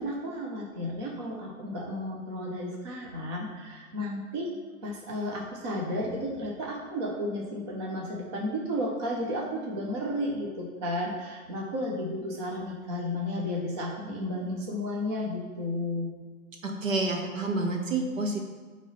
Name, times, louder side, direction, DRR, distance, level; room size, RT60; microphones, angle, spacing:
voice 1, 0.0-4.5 4.8-16.1, left 1 dB, 20° right, -2 dB, 0.6 m, -33 dB
voice 2, 16.6-18.4, right 2 dB, 65° right, 1 dB, 1.5 m, -29 dB
8.4 x 3.1 x 4.1 m, 1.5 s
hypercardioid pair, 140°, 43 cm